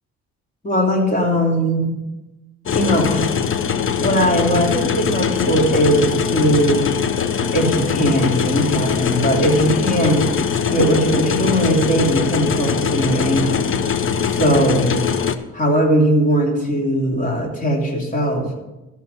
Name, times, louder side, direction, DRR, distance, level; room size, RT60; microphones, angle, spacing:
voice 1, 0.6-2.0 2.7-3.3 4.0-6.8 7.5-10.3 10.7-13.7 14.3-15.0 15.5-18.5, equal, 25° left, -1 dB, 3.0 m, -19 dB
sound 1, 2.7-15.4, left 7 dB, 45° left, 0.8 m, -21 dB
13.5 x 6.0 x 5.6 m, 1.0 s
cardioid pair, 90°, 30 cm